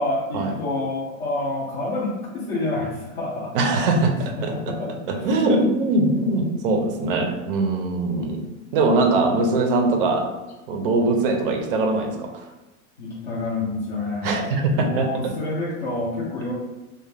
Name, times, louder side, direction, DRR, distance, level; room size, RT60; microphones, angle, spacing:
voice 1, 0.0-3.5 4.4-5.2 5.5-5.7 6.0-6.4 8.1-8.4 9.2-9.4 10.8-11.2 13.0-14.4 14.7-16.5, left 2 dB, 35° left, -6 dB, 0.4 m, -28 dB
voice 2, 3.5-4.7 5.1-10.3 10.7-12.5 14.2-15.3, right 2 dB, 45° right, 3 dB, 0.4 m, -22 dB
2.3 x 2.1 x 3.2 m, 1.1 s
supercardioid pair, 150°, 41 cm